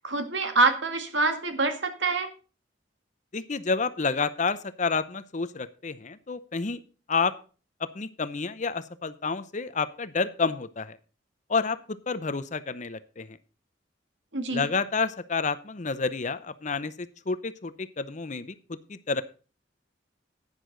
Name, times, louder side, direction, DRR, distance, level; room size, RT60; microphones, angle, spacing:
voice 1, 0.0-2.3 14.3-14.7, right 3 dB, 75° right, 7 dB, 1.9 m, -25 dB
voice 2, 3.3-6.8 7.1-7.3 7.8-11.0 11.5-13.3 14.5-18.6 18.9-19.2, left 4 dB, 40° left, 14 dB, 0.7 m, -29 dB
11.0 x 9.9 x 3.9 m, 0.35 s
head